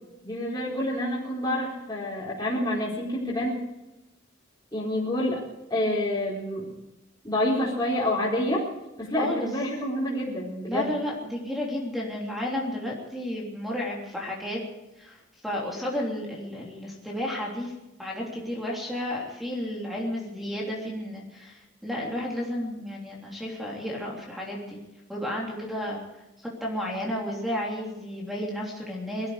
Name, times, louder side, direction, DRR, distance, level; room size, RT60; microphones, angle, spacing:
voice 1, 0.2-3.6 4.7-5.4 5.7-6.7 7.2-8.7 9.0-10.9, left 1 dB, 20° left, -7 dB, 4.4 m, -28 dB
voice 2, 9.2-9.5 10.7-14.6 15.0-17.7 18.0-24.8 25.1-26.0 26.4-29.3, left 1 dB, ahead, -2 dB, 3.2 m, -32 dB
21.0 x 14.0 x 5.0 m, 0.98 s
head